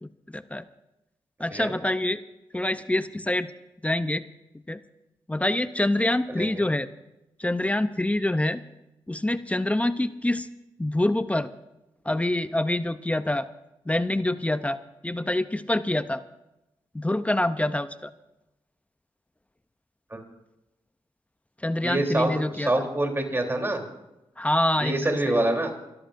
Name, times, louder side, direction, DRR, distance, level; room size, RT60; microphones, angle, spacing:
voice 1, 0.0-0.6 1.4-2.2 2.5-3.5 3.8-4.2 4.7-4.8 5.3-6.9 7.4-8.6 9.1-10.5 10.8-11.5 12.0-13.5 13.9-16.2 16.9-18.1 21.6-22.9 24.4-25.4, left 1 dB, 15° left, 13 dB, 0.6 m, -26 dB
voice 2, 6.3-6.6 20.1-20.2 21.8-23.8 24.8-25.7, right 1 dB, 25° right, 2 dB, 3.4 m, -26 dB
29.5 x 13.5 x 2.6 m, 0.95 s
cardioid pair, 50°, 10 cm